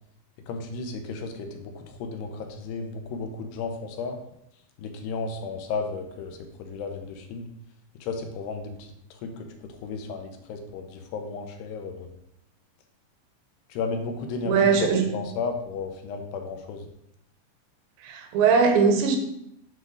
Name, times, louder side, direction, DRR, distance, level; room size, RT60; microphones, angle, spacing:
voice 1, 0.5-4.2 4.8-7.5 8.0-12.1 13.7-16.9, left 4 dB, 80° left, 4 dB, 3.1 m, -34 dB
voice 2, 14.5-15.1 18.0-19.2, right 5 dB, 85° right, 5 dB, 3.6 m, -20 dB
8.1 x 5.9 x 6.5 m, 0.78 s
omnidirectional pair, 5.0 m